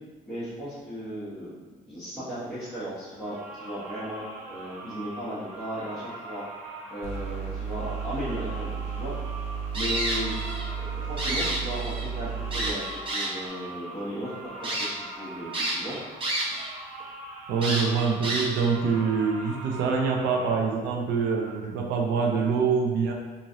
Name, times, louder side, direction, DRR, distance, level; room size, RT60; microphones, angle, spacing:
voice 1, 0.2-1.6 1.8-6.4 6.9-9.1 9.7-10.3 10.8-16.0, equal, ahead, -15 dB, 1.1 m, -36 dB
sound 1, 3.2-20.5, right 2 dB, 55° right, 1.0 m, -42 dB
sound 2, 7.0-12.7, right 6 dB, 35° left, 0.5 m, -33 dB
sound 3, 9.7-10.7 11.0-12.1 12.5-13.5 14.1-14.2 14.6-14.9 15.5-16.7 17.0-17.1 17.6-18.7, right 1 dB, 30° right, 0.7 m, -30 dB
voice 2, 17.5-23.1, right 5 dB, 85° right, 1 dB, 0.5 m, -25 dB
3.0 x 2.5 x 2.7 m, 1.3 s
cardioid pair, 110°, 17 cm